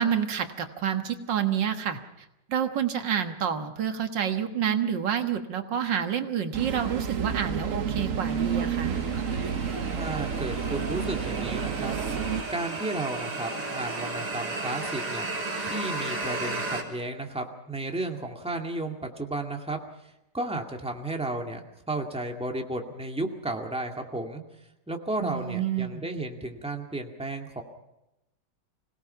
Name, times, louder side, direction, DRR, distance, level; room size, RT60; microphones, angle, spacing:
voice 1, 0.0-2.0 2.5-9.0 25.2-26.0, right 8 dB, 85° right, 7 dB, 2.1 m, -28 dB
sound 1, 6.5-12.4, right 7 dB, 50° right, 1.4 m, -30 dB
sound 2, 8.3-16.8, right 2 dB, 65° right, 3.9 m, -35 dB
voice 2, 10.0-12.0 12.5-15.3 15.6-24.4 24.9-27.6, right 2 dB, 5° right, 3 dB, 2.1 m, -33 dB
26.0 x 18.0 x 5.7 m, 0.91 s
omnidirectional pair, 1.9 m